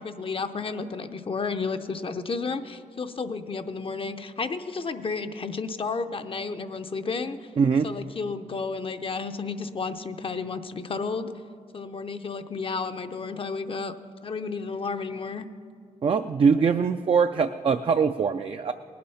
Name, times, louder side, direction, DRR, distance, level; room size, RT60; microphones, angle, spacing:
voice 1, 0.0-7.5 7.8-11.3 11.7-13.9 14.2-15.5, left 4 dB, 45° left, 9 dB, 0.6 m, -32 dB
voice 2, 7.6-7.9 16.0-18.7, right 6 dB, 45° right, 7 dB, 0.4 m, -22 dB
19.0 x 8.6 x 5.6 m, 2.2 s
wide cardioid pair, 95°, 13 cm